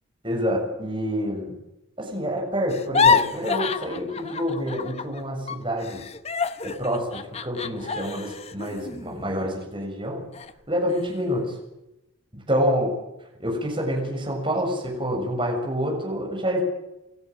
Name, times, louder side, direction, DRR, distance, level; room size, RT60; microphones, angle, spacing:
voice 1, 0.2-1.6 2.0-6.0 6.6-10.3 10.7-11.6 12.3-12.9 13.4-16.6, equal, 25° right, 0 dB, 7.2 m, -27 dB
sound 1, 2.7-5.2 5.5-9.9 10.3-10.5 10.9-11.4, left 5 dB, 30° left, 0.9 m, -27 dB
29.0 x 13.5 x 7.8 m, 0.92 s
head